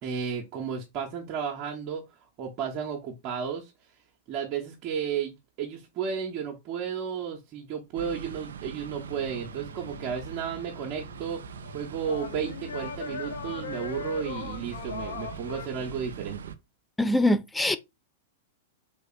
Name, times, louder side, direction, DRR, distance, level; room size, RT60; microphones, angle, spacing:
voice 1, 0.0-2.0 2.4-3.7 4.3-11.4 11.7-16.4, right 7 dB, 45° right, 0.7 m, -33 dB
sound 1, 7.9-16.5, right 7 dB, 75° right, 0.4 m, -42 dB
sound 2, 9.1-15.7, left 6 dB, 70° left, 0.5 m, -40 dB
voice 2, 17.0-17.8, left 1 dB, 5° left, 0.4 m, -23 dB
3.6 x 3.3 x 2.4 m
hypercardioid pair, 105°, 0 cm